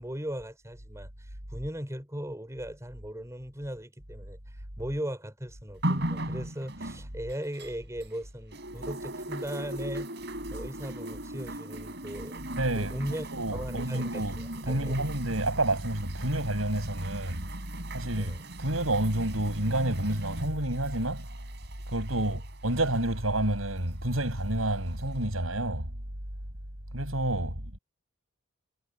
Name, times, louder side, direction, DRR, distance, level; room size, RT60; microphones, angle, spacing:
voice 1, 0.0-10.1 10.5-15.2 18.2-18.4 22.2-22.3, equal, 15° right, 5.1 m, -38 dB
sound 1, 5.8-8.2 8.5-23.2 24.1-24.2, right 1 dB, 55° right, 3.9 m, -38 dB
voice 2, 12.5-17.4 17.9-21.3 21.9-25.9 26.9-27.8, right 1 dB, 85° right, 7.8 m, -29 dB
head